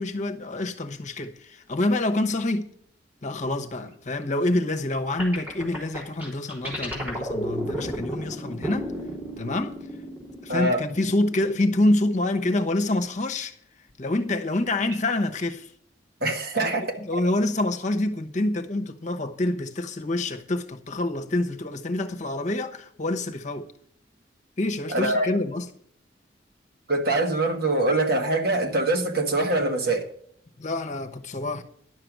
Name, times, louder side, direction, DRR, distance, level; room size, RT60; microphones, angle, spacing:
voice 1, 0.0-2.7 3.2-8.9 9.4-9.8 10.4-13.5 14.0-15.7 16.2-23.7 24.6-25.7 30.6-31.6, left 2 dB, 40° left, 1.0 m, -27 dB
sound 1, 5.2-11.7, right 1 dB, 10° right, 3.6 m, -33 dB
voice 2, 10.5-10.8 16.2-16.8 24.9-25.3 26.9-30.1, right 2 dB, 55° right, 1.8 m, -23 dB
11.0 x 6.8 x 6.1 m
head